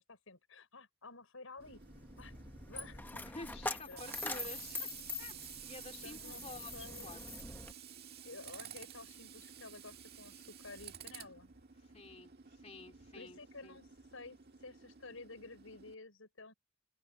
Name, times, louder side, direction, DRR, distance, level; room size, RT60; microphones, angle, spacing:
voice 1, 0.0-1.8 2.2-2.3 2.7-3.3 3.9-4.1 4.4-4.5 6.0-6.4 6.7-7.2 8.2-11.5 13.1-16.5, left 3 dB, 80° left, 4.9 m, -52 dB
Coin (dropping), 1.6-7.7, left 3 dB, 10° left, 0.9 m, -44 dB
Tools, 1.6-15.9, right 8 dB, 50° right, 1.7 m, -52 dB
voice 2, 3.2-4.9 5.2-7.2 11.8-13.8, left 3 dB, 30° left, 3.0 m, -51 dB
open air
head